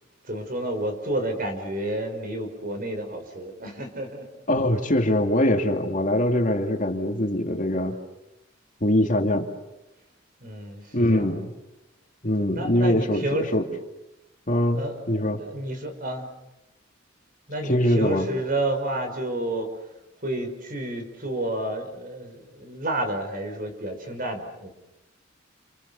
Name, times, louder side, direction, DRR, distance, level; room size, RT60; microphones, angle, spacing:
voice 1, 0.2-4.3 10.4-11.3 12.4-13.5 14.7-16.3 17.5-19.7 20.2-24.7, right 1 dB, 45° right, 5 dB, 5.3 m, -30 dB
voice 2, 4.5-8.0 8.8-9.5 10.9-11.5 12.2-13.2 13.5-13.6 14.5-15.4 17.6-18.3, left 1 dB, 40° left, 4 dB, 2.5 m, -23 dB
29.5 x 28.5 x 7.0 m, 0.93 s
head